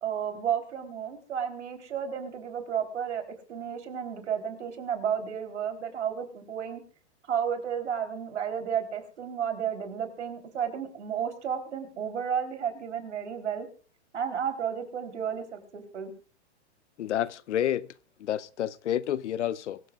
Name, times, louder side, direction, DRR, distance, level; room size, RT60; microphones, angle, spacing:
voice 1, 0.0-3.2 3.5-6.8 7.2-13.7 14.1-16.1, right 8 dB, 85° right, 3.8 m, -32 dB
voice 2, 17.0-17.9 18.2-19.8, left 11 dB, 85° left, 0.8 m, -29 dB
23.5 x 14.5 x 2.4 m
hypercardioid pair, 140°, 34 cm